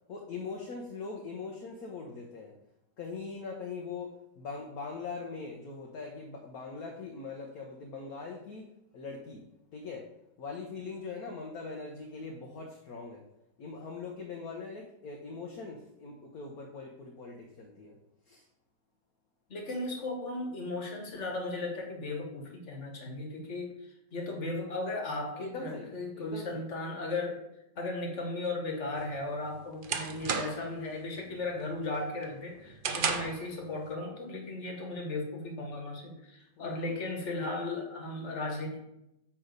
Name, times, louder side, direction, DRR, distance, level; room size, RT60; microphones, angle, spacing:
voice 1, 0.1-2.6 3.0-8.7 8.9-9.4 9.7-10.1 10.4-13.2 13.6-18.0 18.2-18.5 25.4-26.7 36.6-37.0, left 4 dB, 60° left, 1 dB, 1.4 m, -41 dB
voice 2, 19.5-23.8 24.1-27.4 27.7-38.8, left 2 dB, 45° left, 1 dB, 1.8 m, -36 dB
sound 1, 29.0-30.8 31.2-31.5 31.9-33.5, right 5 dB, 90° right, 0.4 m, -34 dB
8.8 x 3.6 x 6.6 m, 0.85 s
omnidirectional pair, 1.9 m